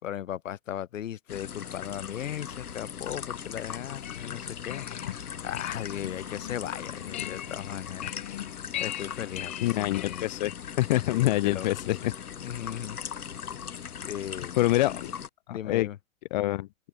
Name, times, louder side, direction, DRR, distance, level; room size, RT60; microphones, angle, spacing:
voice 1, 0.0-8.4 8.8-10.2 11.1-12.1 12.4-13.0 14.0-14.6 14.8-15.0 15.5-16.0, left 10 dB, 60° left, 6.6 m, -37 dB
sound 1, 1.3-15.3, left 8 dB, 85° left, 3.0 m, -39 dB
sound 2, 3.8-10.6, left 13 dB, 10° left, 0.4 m, -40 dB
voice 2, 9.6-12.1 14.6-15.1 15.5-15.9 16.3-16.7, left 16 dB, 30° left, 0.9 m, -26 dB
open air
hypercardioid pair, 155°, 43 cm